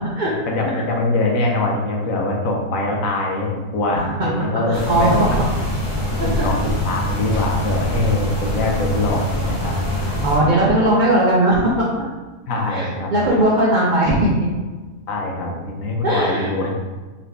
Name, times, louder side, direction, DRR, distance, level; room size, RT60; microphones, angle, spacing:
voice 1, 0.5-5.3 6.2-9.7 12.5-13.1 15.1-16.8, left 2 dB, 65° left, -1 dB, 0.9 m, -23 dB
sound 1, 4.7-10.4, left 1 dB, 20° left, 1.2 m, -23 dB
voice 2, 4.7-5.1 10.2-11.8 12.7-14.3 16.0-16.5, right 1 dB, 65° right, -5 dB, 0.4 m, -18 dB
4.0 x 2.9 x 3.3 m, 1.3 s
omnidirectional pair, 1.7 m